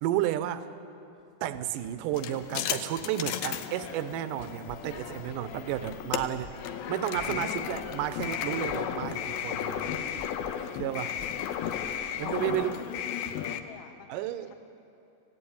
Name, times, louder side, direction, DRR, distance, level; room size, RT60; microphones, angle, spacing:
voice 1, 0.0-0.7 1.4-6.6 6.9-10.0 10.7-11.1 12.2-12.8 14.1-14.5, right 12 dB, 75° right, 12 dB, 2.2 m, -32 dB
Run, 1.2-13.6, right 2 dB, 30° right, 1.1 m, -56 dB
sound 1, 2.1-13.6, left 9 dB, 85° left, 2.8 m, -34 dB
sound 2, 4.6-12.6, left 1 dB, 50° left, 1.2 m, -50 dB
voice 2, 12.4-14.7, left 6 dB, 70° left, 5 dB, 3.0 m, -50 dB
27.5 x 17.0 x 8.7 m, 2.8 s
omnidirectional pair, 4.3 m